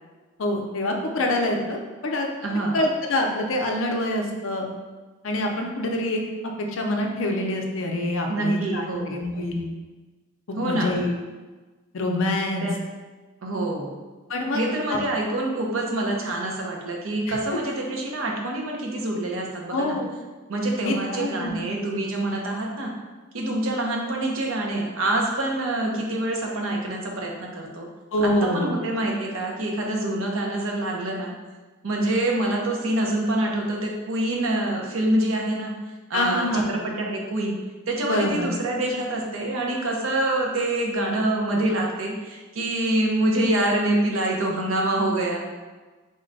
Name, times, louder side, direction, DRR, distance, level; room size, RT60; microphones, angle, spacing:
voice 1, 0.4-2.3 2.7-4.7 5.2-9.7 10.6-11.1 11.9-12.7 14.3-14.6 14.9-15.0 17.3-17.4 19.7-20.1 20.8-21.6 28.1-28.7 36.1-36.7 38.1-38.5, left 1 dB, 60° left, 2 dB, 0.5 m, -26 dB
voice 2, 2.4-2.8 8.3-9.2 10.6-10.9 12.6-12.7 13.4-14.0 14.5-20.0 20.5-22.9 23.3-27.9 28.2-31.3 31.8-35.7 36.1-37.6 37.9-45.4, right 1 dB, 65° right, 0 dB, 0.6 m, -26 dB
3.7 x 2.2 x 3.9 m, 1.3 s
head